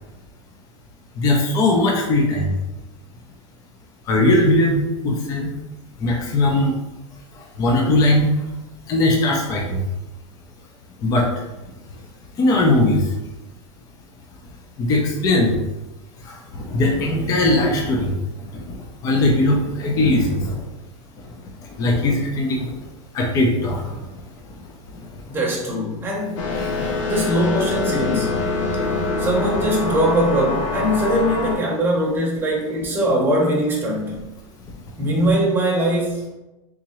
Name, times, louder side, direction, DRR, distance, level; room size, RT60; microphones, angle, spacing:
voice 1, 1.2-2.5 4.1-5.5 6.0-6.7 7.6-8.3 8.9-9.8 11.0-11.3 12.4-13.0 14.8-15.5 16.7-18.1 19.0-20.5 21.8-22.6 23.1-23.8, left 2 dB, 20° left, 0 dB, 0.5 m, -19 dB
voice 2, 25.3-26.4 27.1-28.4 29.2-34.2 35.0-36.2, right 1 dB, 15° right, -3 dB, 0.8 m, -21 dB
sound 1, 26.4-31.6, left 3 dB, 85° left, 0.7 m, -24 dB
3.6 x 2.9 x 3.0 m, 1.0 s
supercardioid pair, 150°, 16 cm